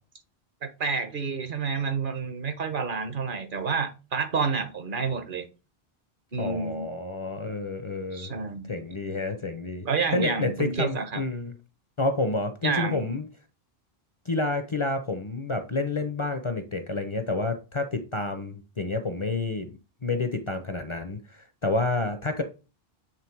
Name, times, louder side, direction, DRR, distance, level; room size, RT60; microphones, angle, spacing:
voice 1, 0.6-5.5 6.3-6.9 8.1-8.8 9.8-11.2 12.6-13.0, right 5 dB, 55° right, 1.1 m, -29 dB
voice 2, 6.4-8.3 8.7-9.9 10.1-11.5 12.0-13.3 14.3-19.7 20.0-22.4, left 3 dB, 35° left, 0.6 m, -29 dB
7.6 x 3.3 x 4.5 m
omnidirectional pair, 1.0 m